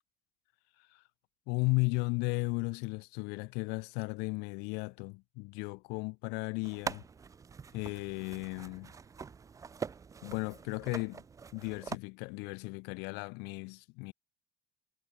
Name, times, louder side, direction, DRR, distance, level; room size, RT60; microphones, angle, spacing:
voice 1, 1.5-7.0 7.7-8.9 10.2-11.2 11.5-14.1, left 30 dB, 75° left, 0.7 m, -35 dB
sound 1, 6.6-12.0, right 5 dB, 20° right, 0.4 m, -43 dB
supercardioid pair, 100°, 17 cm